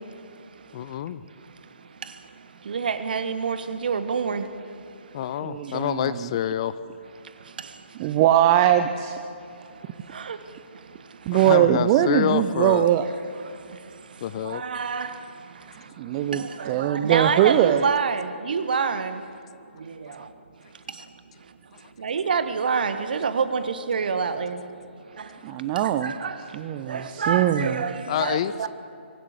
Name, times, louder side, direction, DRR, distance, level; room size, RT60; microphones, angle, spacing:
voice 1, 0.7-1.2 5.1-6.8 11.3-12.8 14.2-14.6 28.1-28.7, left 10 dB, 30° left, 0.5 m, -27 dB
voice 2, 2.7-4.4 10.3-10.4 14.5-15.1 16.6-19.1 22.0-24.6 26.0-26.3 26.9-27.9 28.2-28.7, right 5 dB, 45° right, 1.4 m, -26 dB
voice 3, 5.4-6.3 8.0-9.2 11.3-13.1 16.0-17.8 25.4-26.1 26.5-27.8, right 11 dB, 20° right, 0.6 m, -21 dB
23.5 x 12.0 x 9.7 m
figure-of-eight pair, 140°, 6 cm